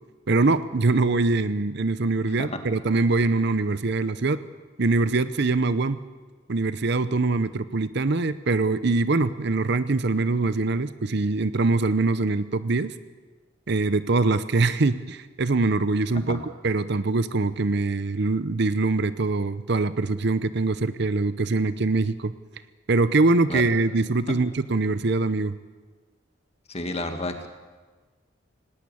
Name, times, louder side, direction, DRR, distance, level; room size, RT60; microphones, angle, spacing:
voice 1, 0.3-4.4 4.8-6.0 6.5-12.9 13.7-22.3 22.9-25.5, right 3 dB, 60° right, 14 dB, 0.8 m, -23 dB
voice 2, 26.7-27.5, left 2 dB, 35° left, 6 dB, 1.9 m, -31 dB
18.5 x 18.5 x 8.5 m, 1.4 s
head